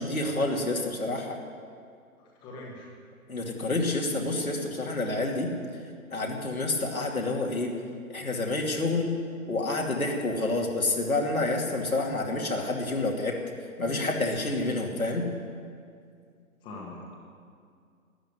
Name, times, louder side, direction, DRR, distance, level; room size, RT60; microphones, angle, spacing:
voice 1, 0.0-1.4 3.3-5.5 6.1-7.7 8.1-9.1 9.5-13.3 13.8-15.3, left 2 dB, 75° left, 0 dB, 2.7 m, -28 dB
voice 2, 2.4-2.9 13.8-14.0 16.6-17.1, left 3 dB, 10° left, -3 dB, 1.5 m, -41 dB
13.0 x 10.5 x 9.5 m, 2.2 s
figure-of-eight pair, 140°, 43 cm